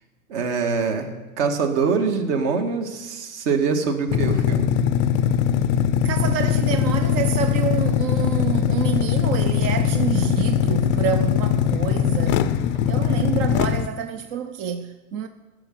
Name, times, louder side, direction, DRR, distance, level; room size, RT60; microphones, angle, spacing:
voice 1, 0.3-4.7, right 5 dB, 50° right, 1.8 m, -24 dB
sound 1, 4.1-13.9, left 9 dB, 25° left, 0.5 m, -21 dB
voice 2, 6.0-12.6 12.9-15.3, right 8 dB, 30° right, 0.4 m, -28 dB
15.0 x 6.6 x 5.9 m
hypercardioid pair, 115°, 43 cm